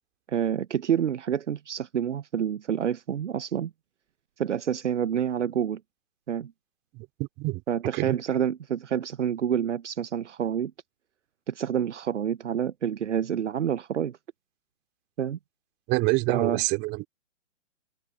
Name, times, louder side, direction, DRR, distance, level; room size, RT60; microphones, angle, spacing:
voice 1, 0.3-3.7 4.4-5.8 6.3-6.5 7.7-10.7 11.5-14.2 15.2-15.4 16.3-16.6, right 9 dB, 65° right, 0.9 m, -28 dB
voice 2, 6.9-7.6 7.9-8.2 15.9-17.1, right 24 dB, 25° right, 2.8 m, -27 dB
open air
figure-of-eight pair, 125°, 38 cm